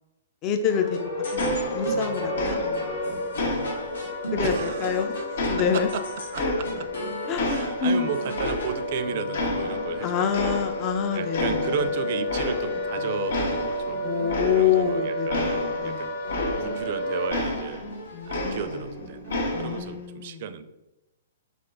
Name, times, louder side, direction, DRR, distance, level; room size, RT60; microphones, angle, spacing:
voice 1, 0.4-3.3 4.3-5.2 5.5-5.9 6.4-6.6 7.3-8.1 10.0-11.7 14.0-16.1 18.1-18.7 19.5-20.4, left 7 dB, 30° left, 6 dB, 0.4 m, -27 dB
sound 1, 0.7-10.2 10.9-14.9 15.4-15.7 16.0-19.6, equal, 90° left, 1.5 m, -39 dB
sound 2, 0.7-17.3, left 1 dB, 55° left, 1.4 m, -31 dB
sound 3, 1.4-2.1 2.3-3.0 3.4-5.0 5.4-7.0 7.4-9.0 9.3-10.0 10.3-11.0 11.3-11.9 12.3-12.9 13.3-16.9 17.3-18.9 19.3-19.9, left 1 dB, 70° left, 0.9 m, -30 dB
voice 2, 4.4-5.1 5.6-5.7 5.9-6.0 6.3-6.9 7.4-10.6 11.1-14.0 14.5-16.1 16.6-17.8 18.3-20.7, right 7 dB, 50° right, 11 dB, 0.4 m, -34 dB
3.7 x 3.4 x 3.8 m, 0.97 s
hypercardioid pair, 140°, 0 cm